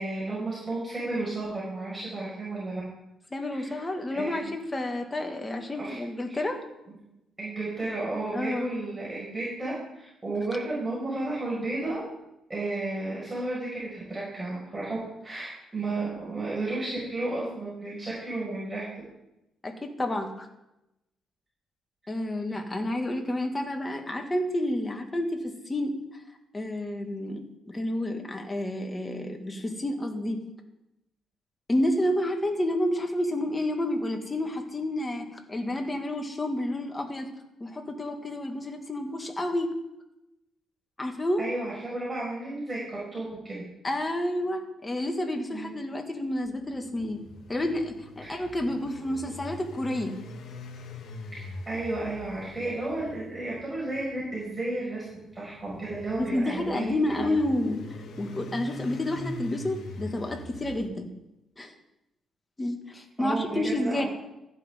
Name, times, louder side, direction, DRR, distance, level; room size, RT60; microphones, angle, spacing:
voice 1, 0.0-2.8 3.4-3.8 4.1-4.4 5.8-6.0 6.3-6.4 6.9-7.0 7.4-12.0 12.5-15.0 15.2-18.8 41.4-43.6 45.5-45.7 48.2-48.4 51.3-51.4 51.7-55.0 55.3-57.3 63.2-64.1, right 2 dB, 20° right, -7 dB, 5.8 m, -33 dB
voice 2, 3.3-6.6 8.3-8.7 19.6-20.5 22.1-26.0 26.5-30.4 31.7-37.3 37.6-39.7 41.0-41.5 43.8-47.2 47.5-50.2 56.2-57.8 58.2-61.1 61.6-61.7 62.6-64.0, left 1 dB, 20° left, 3 dB, 2.1 m, -30 dB
sound 1, 46.4-60.9, left 2 dB, 70° left, 1.8 m, -43 dB
15.0 x 11.0 x 3.8 m, 0.90 s
cardioid pair, 90°, 0 cm